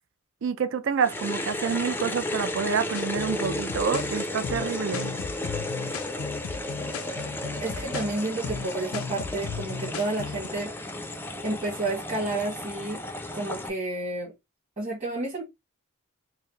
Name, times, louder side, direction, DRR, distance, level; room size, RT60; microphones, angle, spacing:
voice 1, 0.4-5.1, right 6 dB, 60° right, 0.5 m, -28 dB
sound 1, 1.0-13.7, left 1 dB, 10° left, 0.4 m, -33 dB
sound 2, 2.9-10.5, left 6 dB, 75° left, 0.4 m, -36 dB
voice 2, 7.6-10.7 11.4-13.0 13.3-14.3 14.8-15.4, right 2 dB, 30° right, 1.4 m, -30 dB
4.5 x 2.0 x 3.1 m
head